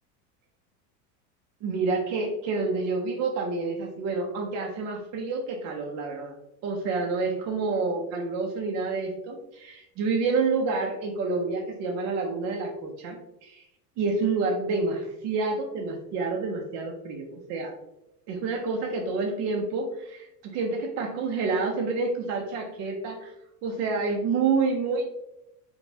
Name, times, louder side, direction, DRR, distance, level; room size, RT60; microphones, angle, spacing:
voice 1, 1.6-6.4 6.6-13.6 14.0-17.7 18.3-23.3 23.6-25.1, right 4 dB, 35° right, 0 dB, 0.4 m, -28 dB
2.9 x 2.2 x 2.6 m, 0.86 s
hypercardioid pair, 100°, 49 cm